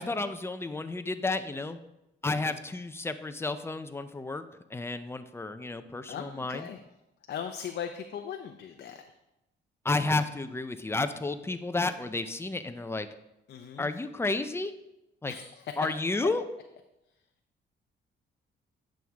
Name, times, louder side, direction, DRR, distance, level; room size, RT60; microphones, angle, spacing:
voice 1, 0.0-1.8 2.2-4.4 4.7-6.7 9.8-13.1 13.8-14.7 15.2-15.3 15.8-16.4, left 3 dB, 10° left, 10 dB, 0.6 m, -31 dB
voice 2, 6.1-6.8 7.3-9.0 13.5-13.9 15.3-15.5, left 8 dB, 60° left, 5 dB, 0.6 m, -38 dB
9.1 x 6.3 x 3.5 m, 0.91 s
cardioid pair, 90°, 20 cm